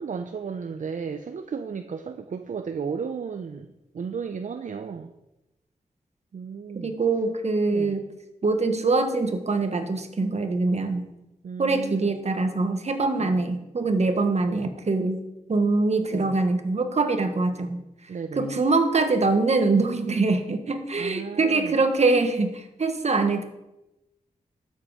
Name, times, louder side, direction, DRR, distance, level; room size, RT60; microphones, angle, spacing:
voice 1, 0.0-5.1 6.3-6.9 7.7-8.0 11.4-12.1 13.2-13.4 16.1-16.4 18.1-18.6 21.0-21.8, right 6 dB, 70° right, 7 dB, 0.6 m, -34 dB
voice 2, 6.8-8.0 8.4-11.1 11.6-15.2 15.5-17.8 18.4-23.4, right 3 dB, 55° right, 7 dB, 1.4 m, -23 dB
12.0 x 7.7 x 5.0 m, 0.95 s
wide cardioid pair, 70°, 14 cm